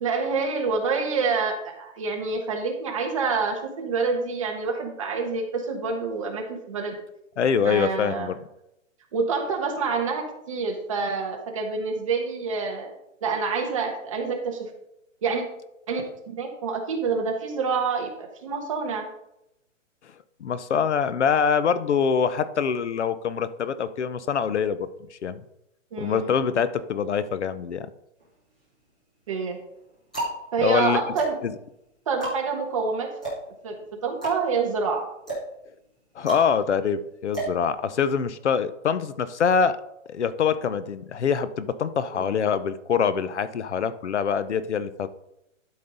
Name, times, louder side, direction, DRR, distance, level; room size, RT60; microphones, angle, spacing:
voice 1, 0.0-6.9 7.6-8.3 9.1-12.9 13.2-14.7 15.2-15.4 15.9-19.1 25.9-26.3 29.3-29.6 30.5-31.4 32.1-33.1 33.6-35.0 42.1-42.4, right 4 dB, 25° right, 2 dB, 1.2 m, -27 dB
voice 2, 7.4-8.3 20.4-25.4 26.0-27.9 30.6-31.0 31.4-31.5 36.2-39.8 40.1-45.1, left 6 dB, 60° left, 14 dB, 0.8 m, -24 dB
sound 1, 28.2-28.9 29.6-38.3, right 2 dB, 5° left, 0.6 m, -34 dB
12.0 x 5.3 x 3.9 m, 0.83 s
hypercardioid pair, 180°, 38 cm